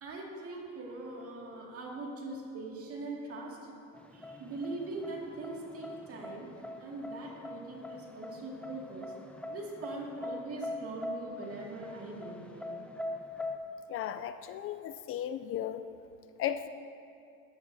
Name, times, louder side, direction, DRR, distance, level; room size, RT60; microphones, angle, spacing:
voice 1, 0.0-3.7 4.1-6.5 6.8-9.1 9.5-12.9, right 2 dB, 45° right, -1 dB, 2.1 m, -42 dB
Door System Speaker makes feedback sounds, 3.9-13.6, left 2 dB, 5° left, 0.6 m, -42 dB
voice 2, 13.9-15.8 16.4-16.7, left 10 dB, 45° left, 11 dB, 0.4 m, -35 dB
13.5 x 10.5 x 2.7 m, 2.6 s
supercardioid pair, 95°, 31 cm